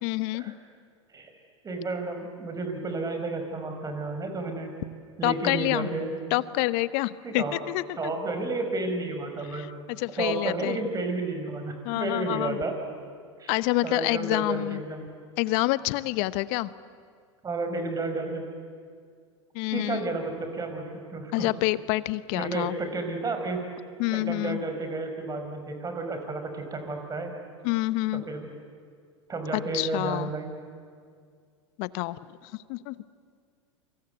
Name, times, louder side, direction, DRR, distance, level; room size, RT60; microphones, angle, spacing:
voice 1, 0.0-0.5 5.2-5.9 6.3-8.1 9.5-10.8 11.8-12.6 13.5-14.8 15.4-16.7 19.5-20.0 21.3-22.7 24.0-24.6 27.6-28.2 29.5-30.3 31.8-32.2 32.4-33.0, left 19 dB, 55° left, 16 dB, 1.0 m, -27 dB
voice 2, 1.6-4.7 5.2-6.1 7.2-7.5 8.0-9.7 10.2-12.7 13.4-13.5 13.8-15.1 17.4-18.4 19.7-21.5 22.3-23.6 24.1-27.3 28.1-28.5 29.3-30.5, right 3 dB, 20° right, 5 dB, 5.5 m, -31 dB
28.0 x 26.0 x 8.1 m, 2.1 s
hypercardioid pair, 95°, 16 cm